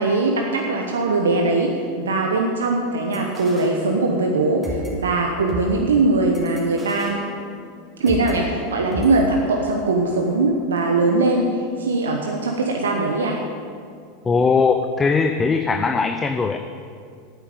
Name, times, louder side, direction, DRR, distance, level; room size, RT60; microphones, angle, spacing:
voice 1, 0.0-7.2 8.0-11.5 11.8-13.4, right 3 dB, 80° right, 1 dB, 1.1 m, -21 dB
sound 1, 3.1-4.3 4.6-8.4 8.9-9.2, equal, 15° right, 3.5 m, -34 dB
voice 2, 14.2-16.6, left 4 dB, 20° left, 7 dB, 0.7 m, -19 dB
11.0 x 9.0 x 6.9 m, 2.3 s
hypercardioid pair, 90°, 0 cm